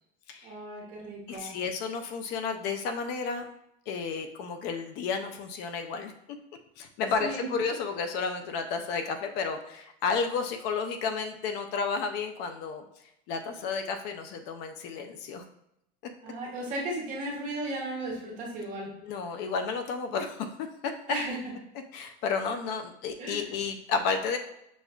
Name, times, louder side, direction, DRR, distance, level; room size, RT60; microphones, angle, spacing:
voice 1, 0.4-1.6 7.2-7.5 16.2-18.9 21.1-21.4 23.2-23.5, right 1 dB, 40° right, -3 dB, 1.3 m, -35 dB
voice 2, 1.3-3.5 3.9-6.1 6.8-12.9 13.3-15.5 19.0-20.9 21.9-24.4, left 5 dB, 55° left, 6 dB, 0.4 m, -32 dB
6.1 x 2.4 x 2.3 m, 0.79 s
cardioid pair, 160°, 21 cm